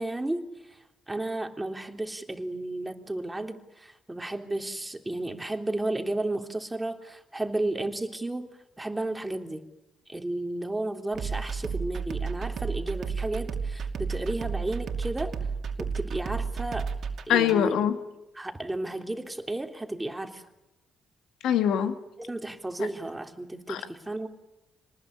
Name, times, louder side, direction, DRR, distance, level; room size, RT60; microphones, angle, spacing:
voice 1, 0.0-9.7 10.1-15.5 15.8-17.0 17.3-17.8 18.4-20.5 22.2-24.3, right 2 dB, 15° right, 5 dB, 3.3 m, -33 dB
sound 1, 11.1-17.6, right 5 dB, 60° right, 2.6 m, -32 dB
voice 2, 17.3-18.0 21.4-21.9 22.8-22.9 23.7-23.8, left 9 dB, 75° left, 8 dB, 2.1 m, -23 dB
27.0 x 20.0 x 9.8 m, 1.0 s
hypercardioid pair, 50°, 0 cm